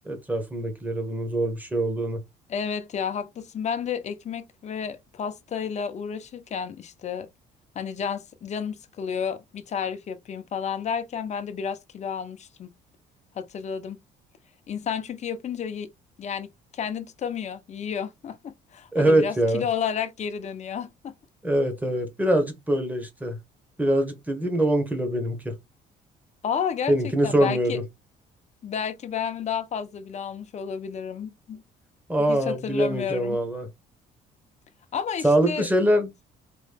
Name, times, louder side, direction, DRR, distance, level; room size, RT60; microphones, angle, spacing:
voice 1, 0.0-2.2 18.9-19.6 21.4-23.4 23.8-25.5 26.9-27.8 32.1-33.7 35.2-36.1, right 1 dB, 10° right, 1.6 m, -23 dB
voice 2, 2.5-7.3 7.7-12.7 13.4-14.0 14.7-15.9 16.2-16.5 16.7-21.1 26.4-27.8 28.6-31.6 32.3-33.4 34.9-35.7, left 7 dB, 40° left, 0.9 m, -31 dB
4.2 x 3.2 x 3.4 m
cardioid pair, 110°, 17 cm